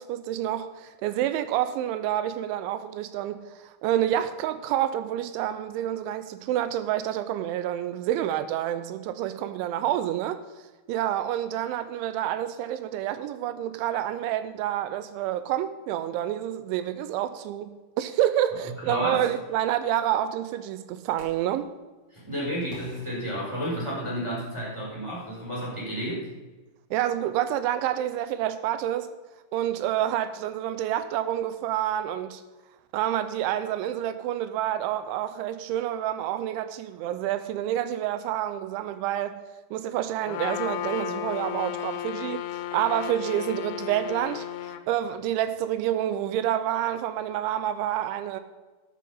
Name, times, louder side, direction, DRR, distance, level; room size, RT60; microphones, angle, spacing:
voice 1, 0.0-10.4 10.9-21.7 26.9-29.1 29.5-32.4 32.9-39.4 39.7-48.4, right 11 dB, 80° right, 2.8 m, -28 dB
voice 2, 18.8-19.3 22.1-26.3, equal, 5° right, 3.6 m, -31 dB
sound 1, 21.2-21.6 22.7-24.2, left 1 dB, 25° right, 3.3 m, -48 dB
Trumpet, 40.3-44.8, left 12 dB, 90° left, 3.2 m, -34 dB
12.5 x 7.8 x 5.5 m
omnidirectional pair, 5.6 m